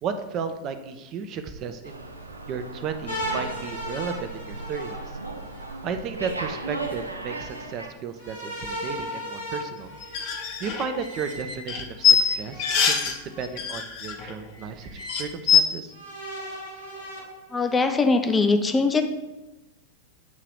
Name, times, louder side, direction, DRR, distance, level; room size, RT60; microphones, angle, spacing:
voice 1, 0.0-2.0 2.5-5.2 5.8-9.9 10.6-15.9, right 6 dB, 35° right, 8 dB, 0.6 m, -34 dB
Slam, 1.8-7.9, right 2 dB, 85° right, 0.8 m, -36 dB
sound 1, 3.1-5.7 8.2-11.2 12.5-13.4 14.2-14.3 15.9-17.9, equal, 75° left, 2.0 m, -36 dB
sound 2, 10.0-13.2 13.4-14.3 14.6-14.7 15.0-15.6, left 7 dB, 45° left, 0.8 m, -23 dB
voice 2, 17.5-19.0, left 3 dB, 15° left, 6 dB, 0.6 m, -21 dB
8.2 x 2.9 x 4.8 m, 1.1 s
figure-of-eight pair, 90°, 0 cm